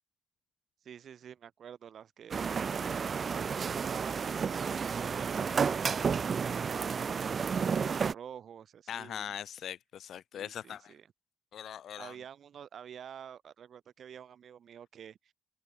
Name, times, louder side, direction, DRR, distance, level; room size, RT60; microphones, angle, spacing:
voice 1, 0.8-2.4 3.1-5.4 6.1-7.2 7.4-9.4 10.3-11.1 12.0-15.3, right 8 dB, 55° right, 2.8 m, -49 dB
sound 1, 2.3-8.1, right 6 dB, 40° right, 0.3 m, -31 dB
voice 2, 8.9-10.9 11.5-12.2, left 9 dB, 70° left, 5.1 m, -41 dB
open air
wide cardioid pair, 160°, 0 cm